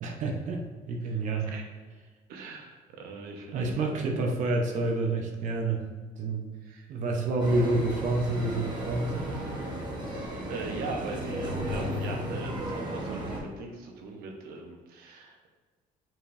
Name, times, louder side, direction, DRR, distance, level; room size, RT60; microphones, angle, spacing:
voice 1, 0.0-1.5 3.5-5.9 6.2-6.5 6.9-9.4, right 2 dB, 55° right, 2 dB, 0.8 m, -28 dB
voice 2, 2.3-4.3 6.6-6.9 10.1-15.5, right 3 dB, 80° right, 2 dB, 1.0 m, -40 dB
sound 1, 7.4-13.4, equal, 30° right, 1.1 m, -34 dB
7.6 x 5.1 x 2.6 m, 1.4 s
cardioid pair, 165°, 15 cm